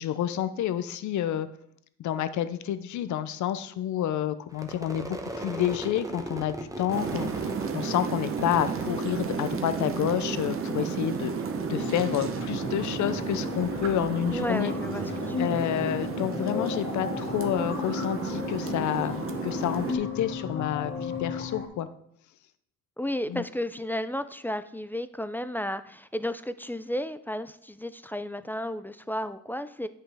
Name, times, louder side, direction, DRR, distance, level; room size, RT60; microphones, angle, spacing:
voice 1, 0.0-1.5 2.0-11.4 11.7-14.7 15.4-21.9 23.3-23.4, left 11 dB, 70° left, 12 dB, 0.6 m, -29 dB
Crowd / Fireworks, 4.5-9.9 10.2-10.9 11.1-14.7, right 1 dB, 10° right, 0.9 m, -40 dB
sound 1, 6.9-20.0, right 5 dB, 45° right, 0.8 m, -32 dB
sound 2, 11.7-21.7, left 5 dB, 40° left, 2.0 m, -35 dB
voice 2, 14.3-15.6 23.0-29.9, left 1 dB, 5° left, 12 dB, 0.3 m, -33 dB
8.7 x 5.5 x 3.5 m, 0.71 s
cardioid pair, 90°, 30 cm